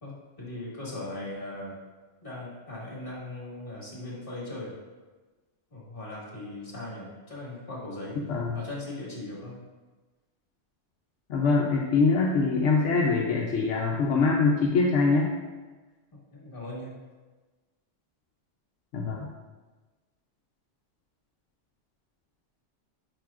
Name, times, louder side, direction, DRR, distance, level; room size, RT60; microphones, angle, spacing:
voice 1, 0.0-1.7 2.2-4.8 5.7-8.2 8.5-9.6 16.1-17.0, left 1 dB, 45° left, -5 dB, 2.0 m, -39 dB
voice 2, 11.3-15.3 18.9-19.3, left 4 dB, 80° left, -1 dB, 1.0 m, -23 dB
9.1 x 4.8 x 2.4 m, 1.3 s
omnidirectional pair, 1.2 m